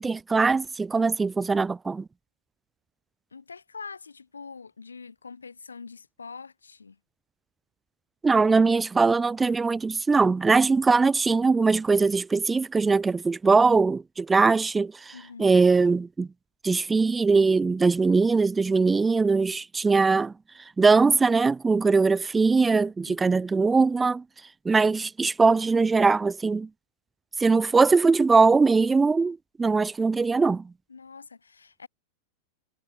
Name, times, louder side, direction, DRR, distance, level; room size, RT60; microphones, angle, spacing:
voice 1, 0.0-2.0 8.2-16.3 16.6-20.3 20.8-24.2 24.6-26.7 27.4-30.6, right 4 dB, 10° right, 1.5 m, -21 dB
voice 2, 3.3-7.0 15.1-15.6 23.1-23.4 30.9-31.9, left 5 dB, 75° left, 7.4 m, -44 dB
figure-of-eight pair, 90°, 0 cm